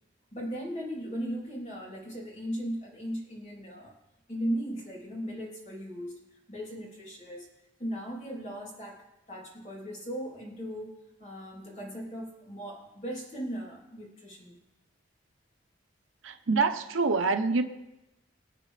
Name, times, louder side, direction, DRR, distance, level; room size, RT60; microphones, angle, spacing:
voice 1, 0.3-3.9 4.3-6.2 6.5-7.5 7.8-10.9 11.2-14.6, equal, 35° left, -3 dB, 3.3 m, -37 dB
voice 2, 16.2-17.6, right 4 dB, 85° right, 8 dB, 0.9 m, -26 dB
23.5 x 8.4 x 3.3 m, 0.94 s
head